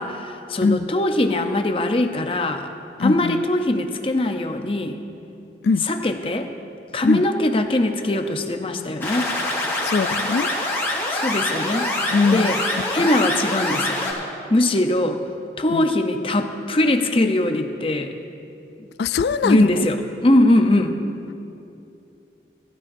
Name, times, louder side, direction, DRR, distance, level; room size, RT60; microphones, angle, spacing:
voice 1, 0.0-2.7 3.0-5.0 5.8-6.5 6.9-9.3 11.1-11.9 12.3-12.6 12.9-14.0 14.5-15.2 15.6-18.1 19.4-20.0 20.2-21.0, left 1 dB, 30° left, 6 dB, 0.7 m, -21 dB
voice 2, 3.0-3.4 5.6-5.9 7.0-7.3 9.8-10.5 12.1-12.6 13.0-13.1 15.7-15.9 19.0-19.9, left 4 dB, 70° left, 14 dB, 0.3 m, -21 dB
sound 1, 9.0-14.1, left 1 dB, 15° left, 2.8 m, -25 dB
19.5 x 12.5 x 2.6 m, 2.7 s
head